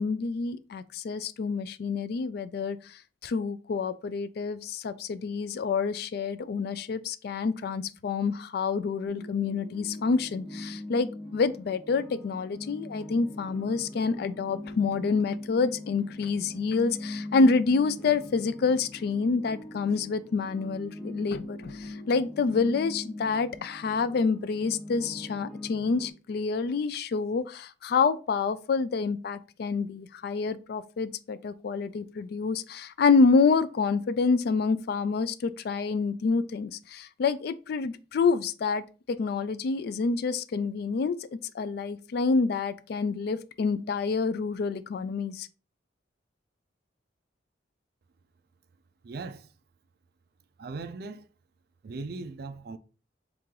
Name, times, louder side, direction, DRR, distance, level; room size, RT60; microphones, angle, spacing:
voice 1, 0.0-45.5, left 4 dB, 55° left, 0.3 m, -27 dB
sound 1, 9.0-26.1, left 1 dB, 5° left, 0.6 m, -41 dB
voice 2, 49.0-49.5 50.6-51.2 51.8-52.8, right 3 dB, 55° right, 0.4 m, -38 dB
3.7 x 3.0 x 3.7 m
head